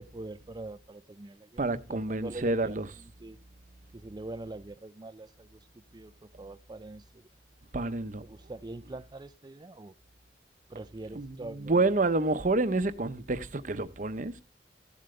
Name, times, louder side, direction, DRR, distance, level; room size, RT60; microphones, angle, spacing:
voice 1, 0.0-3.4 3.9-7.3 8.2-9.9 10.7-12.1, right 2 dB, 25° right, 0.4 m, -44 dB
voice 2, 1.6-2.9 7.7-8.2 11.1-14.4, right 3 dB, 45° right, 0.8 m, -28 dB
15.0 x 7.7 x 3.2 m
head